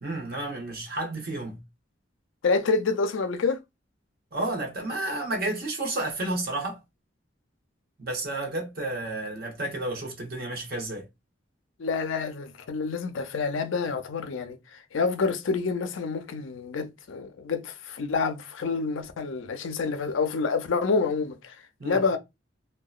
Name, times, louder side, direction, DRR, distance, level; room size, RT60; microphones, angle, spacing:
voice 1, 0.0-1.6 4.3-6.8 8.0-11.0 21.8-22.0, right 2 dB, 50° right, 1.0 m, -31 dB
voice 2, 2.4-3.6 11.8-21.6 21.8-22.2, left 4 dB, 80° left, 0.4 m, -28 dB
2.8 x 2.2 x 2.3 m
head